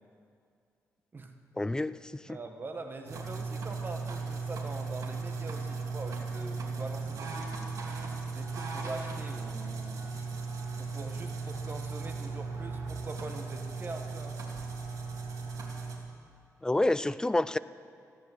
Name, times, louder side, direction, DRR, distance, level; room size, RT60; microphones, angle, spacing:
voice 1, 1.6-2.4 16.6-17.6, left 2 dB, 10° left, 16 dB, 0.4 m, -28 dB
voice 2, 2.3-10.0 10.8-14.4, right 3 dB, 35° right, 5 dB, 1.4 m, -43 dB
sound 1, 3.1-16.0, right 4 dB, 70° right, 2.5 m, -37 dB
15.0 x 10.5 x 7.8 m, 2.4 s
cardioid pair, 100°, 6 cm